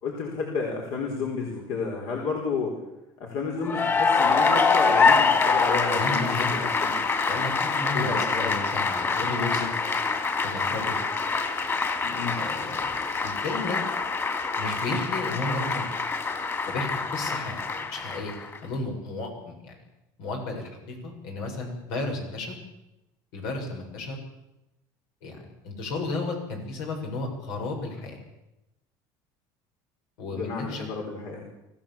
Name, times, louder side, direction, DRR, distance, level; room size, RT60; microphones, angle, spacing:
voice 1, 0.0-2.7 3.2-7.0 7.9-8.6 12.0-12.4 30.3-31.4, left 4 dB, 70° left, 0 dB, 4.7 m, -31 dB
Cheering / Applause, 3.6-18.6, left 4 dB, 25° left, 2.8 m, -25 dB
voice 2, 5.9-6.5 7.3-9.7 10.4-10.9 12.4-13.8 14.6-15.9 16.6-18.3 18.6-19.8 20.2-22.5 23.3-24.2 25.2-25.4 25.6-28.2 30.2-30.9, left 3 dB, 85° left, 2 dB, 7.5 m, -33 dB
25.0 x 15.5 x 7.5 m, 0.93 s
cardioid pair, 125°, 10 cm